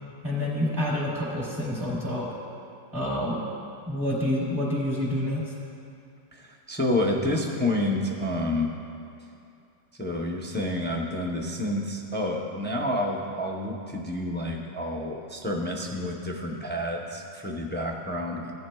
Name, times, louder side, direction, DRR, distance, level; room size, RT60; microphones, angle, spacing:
voice 1, 0.2-2.3 2.9-3.4 3.9-5.5, left 1 dB, 15° right, -9 dB, 2.8 m, -28 dB
voice 2, 6.3-8.7 10.0-18.5, left 1 dB, 10° left, -1 dB, 0.5 m, -29 dB
16.5 x 10.5 x 2.3 m, 2.6 s
omnidirectional pair, 1.3 m